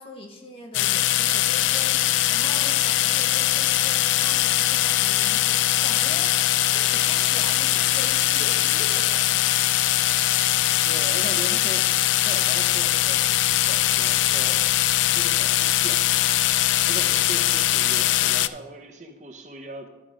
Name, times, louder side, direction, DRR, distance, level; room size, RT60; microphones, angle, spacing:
voice 1, 0.0-9.5, left 1 dB, 30° left, 1 dB, 1.2 m, -41 dB
sound 1, 0.7-18.5, left 13 dB, 90° left, 0.3 m, -21 dB
voice 2, 10.8-11.9 12.2-14.7 15.1-16.5 16.9-19.9, right 1 dB, 40° right, 4 dB, 0.8 m, -39 dB
12.0 x 5.0 x 5.0 m, 1.0 s
head